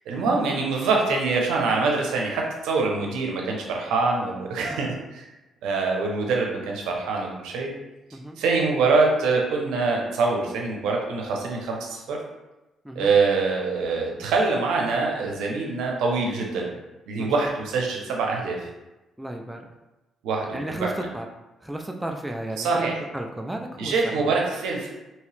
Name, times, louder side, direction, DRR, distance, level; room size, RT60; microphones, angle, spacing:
voice 1, 0.1-5.2 5.6-7.7 8.4-12.2 12.9-16.7 17.1-18.6 20.2-20.9 22.6-22.9 23.8-24.9, right 4 dB, 90° right, 0 dB, 0.7 m, -24 dB
voice 2, 19.2-19.6 20.5-21.3 21.6-24.4, right 1 dB, 5° right, 2 dB, 0.4 m, -34 dB
2.9 x 2.8 x 3.2 m, 1.0 s
cardioid pair, 90°, 0 cm